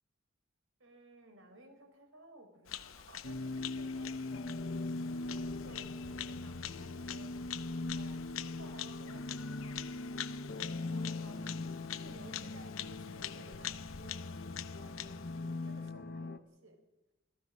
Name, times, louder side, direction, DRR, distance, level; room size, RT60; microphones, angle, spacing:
voice 1, 0.8-4.7 5.2-16.8, right 1 dB, 75° right, 5 dB, 4.8 m, -58 dB
Bird vocalization bird call bird song, 2.7-15.9, left 11 dB, 80° left, 0.8 m, -46 dB
sound 1, 3.2-16.4, left 2 dB, 50° left, 0.8 m, -41 dB
25.5 x 16.0 x 6.5 m, 1.0 s
head